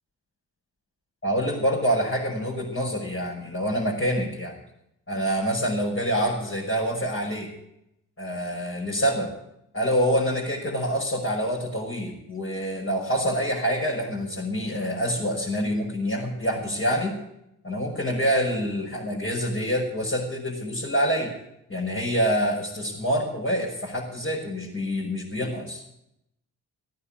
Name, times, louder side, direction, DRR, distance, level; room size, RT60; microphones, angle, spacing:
voice 1, 1.2-4.5 5.1-7.5 8.2-9.3 9.7-17.2 17.6-21.3 21.7-25.8, equal, 30° left, -5 dB, 5.9 m, -26 dB
15.0 x 9.5 x 8.7 m, 0.81 s
hypercardioid pair, 45°, 45 cm